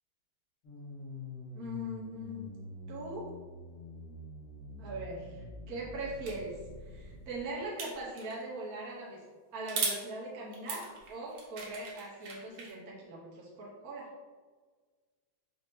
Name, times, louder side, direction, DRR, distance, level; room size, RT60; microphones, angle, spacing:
sound 1, 0.6-7.4, left 1 dB, 70° left, 2.5 m, -46 dB
voice 1, 1.5-2.5 2.9-3.2 4.8-6.6 6.8-9.2 9.5-10.8 11.1-14.1, right 1 dB, 55° right, -5 dB, 1.1 m, -40 dB
sound 2, 6.2-6.4 7.8-8.4 9.7-10.0 10.5-12.7, right 4 dB, 80° right, 1.7 m, -37 dB
5.4 x 2.7 x 3.0 m, 1.4 s
omnidirectional pair, 2.3 m